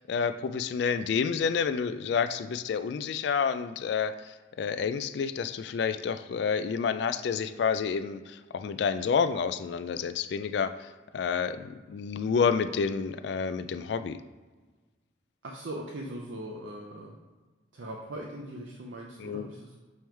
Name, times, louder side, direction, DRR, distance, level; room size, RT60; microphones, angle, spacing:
voice 1, 0.0-10.7 11.1-14.2 19.2-19.5, left 6 dB, 65° left, 11 dB, 0.3 m, -29 dB
voice 2, 15.4-17.2 17.7-19.8, right 1 dB, 75° right, -1 dB, 0.7 m, -40 dB
7.1 x 3.0 x 4.5 m, 1.3 s
head